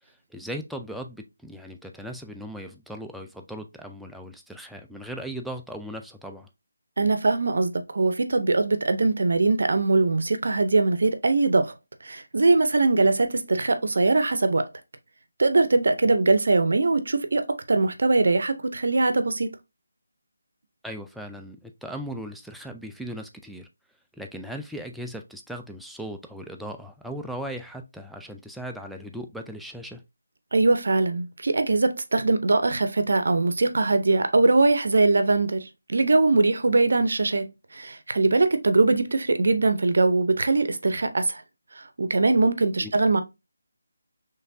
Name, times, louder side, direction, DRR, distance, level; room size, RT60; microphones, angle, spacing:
voice 1, 0.3-6.5 20.8-23.7 24.1-30.0 42.8-42.9, equal, ahead, 0.3 m, -38 dB
voice 2, 7.0-11.7 12.0-14.7 15.4-19.5 30.5-37.5 37.7-41.4 42.0-43.2, right 3 dB, 65° right, 0.6 m, -21 dB
4.4 x 3.3 x 2.6 m
figure-of-eight pair, 160°, 0 cm